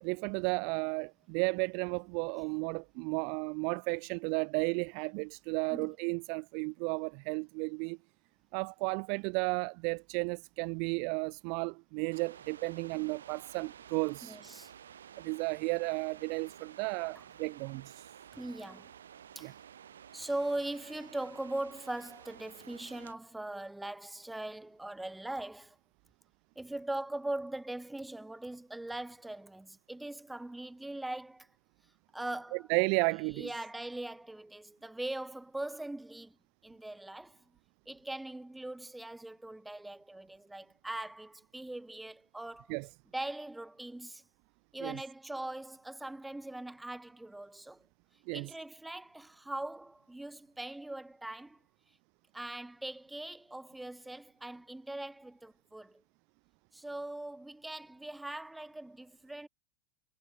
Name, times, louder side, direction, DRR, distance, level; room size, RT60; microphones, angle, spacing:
voice 1, 0.0-8.0 8.5-14.4 15.2-18.1 19.4-19.5 32.7-33.5 42.7-42.9 44.8-45.0 48.3-48.5, right 39 dB, 50° right, 0.6 m, -33 dB
sound 1, 12.1-23.1, right 9 dB, 75° right, 3.6 m, -53 dB
voice 2, 14.2-14.7 17.1-17.2 18.3-18.9 19.3-19.5 20.1-25.8 26.6-31.5 32.1-32.7 33.3-36.4 36.6-37.5 37.9-42.7 43.1-44.2 44.7-47.9 48.3-51.6 52.3-56.0 56.7-59.5, right 1 dB, 5° right, 2.8 m, -41 dB
figure-of-eight pair, 90°, 0 cm